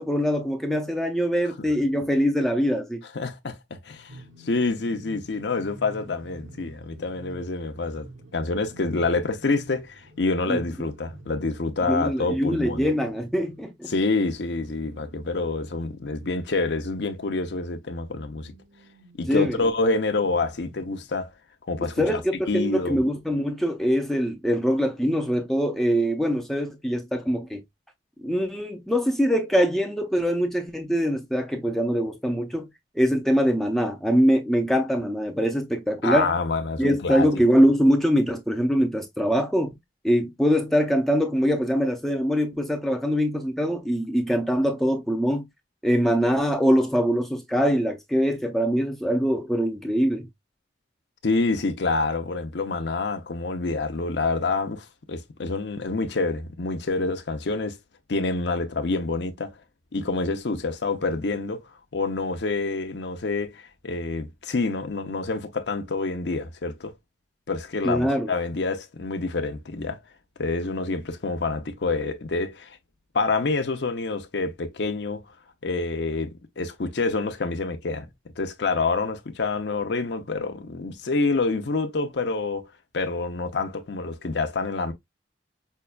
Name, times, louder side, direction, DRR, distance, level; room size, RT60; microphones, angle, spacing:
voice 1, 0.0-3.0 10.5-10.6 11.9-13.9 19.3-19.6 22.0-27.6 28.2-32.7 32.9-36.3 36.8-39.7 40.0-45.5 45.8-50.3 67.8-68.3, equal, ahead, 0.4 m, -23 dB
voice 2, 3.1-12.9 13.9-18.5 19.2-21.3 21.7-22.2 22.5-23.0 36.0-37.3 51.2-57.8 58.1-59.5 59.9-61.6 61.9-66.9 67.5-70.0 70.4-72.8 73.1-75.2 75.6-78.1 78.4-82.7 82.9-84.9, left 3 dB, 65° left, 0.7 m, -27 dB
sound 1, 4.1-17.8 18.2-21.1, equal, 90° right, 1.0 m, -49 dB
5.5 x 2.3 x 2.3 m
head